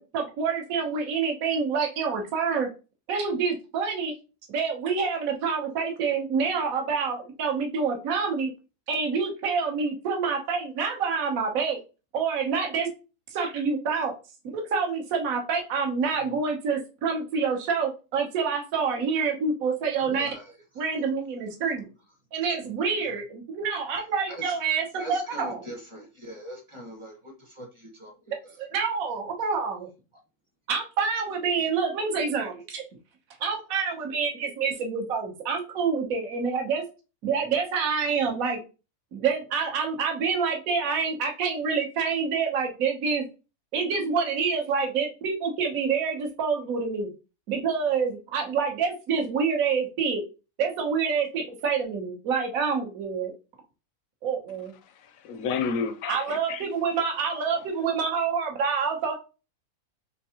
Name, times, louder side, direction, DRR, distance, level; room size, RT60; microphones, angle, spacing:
voice 1, 0.0-2.7 3.1-4.1 4.5-8.5 8.9-11.8 12.1-12.9 13.3-14.1 14.5-20.3 20.8-21.9 22.3-25.6 28.3-29.9 30.7-32.8 33.4-36.8 37.2-38.6 39.1-43.2 43.7-47.1 47.5-50.2 50.6-53.3 54.2-54.7 56.1-59.1, right 5 dB, 65° right, 1.3 m, -27 dB
voice 2, 20.0-20.8 24.3-24.6 25.0-28.6, right 1 dB, 25° right, 0.8 m, -42 dB
voice 3, 54.8-56.7 57.3-57.4, left 5 dB, 70° left, 0.9 m, -31 dB
4.5 x 3.2 x 2.8 m
omnidirectional pair, 1.6 m